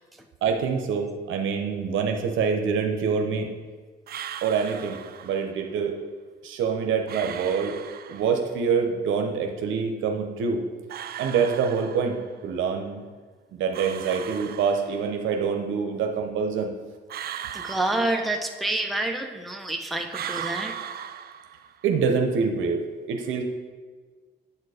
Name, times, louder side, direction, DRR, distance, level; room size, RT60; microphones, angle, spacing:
voice 1, 0.4-3.5 4.4-5.9 6.4-7.8 8.1-10.6 11.2-12.2 12.4-13.0 13.5-16.7 21.8-22.8 23.1-23.4, right 6 dB, 80° right, 4 dB, 0.8 m, -25 dB
sound 1, 4.1-5.5 7.1-8.6 10.9-12.4 13.7-15.3 17.1-18.8 20.1-21.9, right 9 dB, 50° right, 0.4 m, -38 dB
voice 2, 17.5-20.7, right 2 dB, ahead, 3 dB, 0.6 m, -28 dB
8.5 x 4.5 x 4.9 m, 1.4 s
cardioid pair, 90°, 20 cm